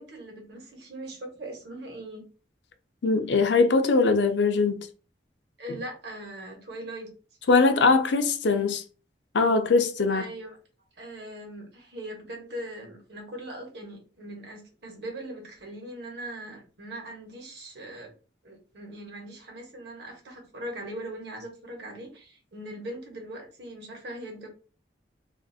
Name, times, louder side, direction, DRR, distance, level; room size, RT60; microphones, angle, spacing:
voice 1, 0.0-2.3 5.6-7.1 10.1-10.6 11.0-18.1 18.4-24.5, right 1 dB, 65° right, 1.0 m, -40 dB
voice 2, 3.0-4.9 7.5-8.8 9.3-10.3, left 4 dB, 75° left, 0.5 m, -21 dB
2.5 x 2.4 x 2.6 m
head